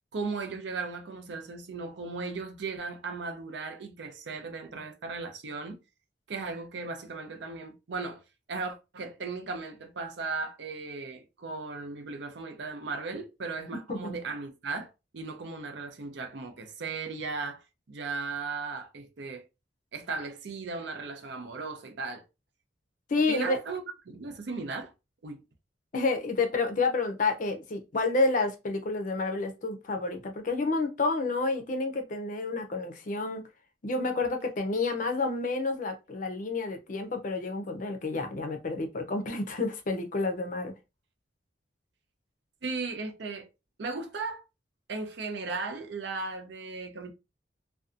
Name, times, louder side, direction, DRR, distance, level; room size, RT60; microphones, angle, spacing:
voice 1, 0.1-5.8 6.3-8.2 8.5-19.4 19.9-22.2 23.3-24.9 25.2-25.4 42.6-43.5 43.8-44.4 44.9-47.1, right 4 dB, 70° right, 0.5 m, -36 dB
voice 2, 23.1-23.6 25.9-33.4 33.8-40.7, left 3 dB, 45° left, 0.5 m, -29 dB
2.6 x 2.2 x 2.5 m
head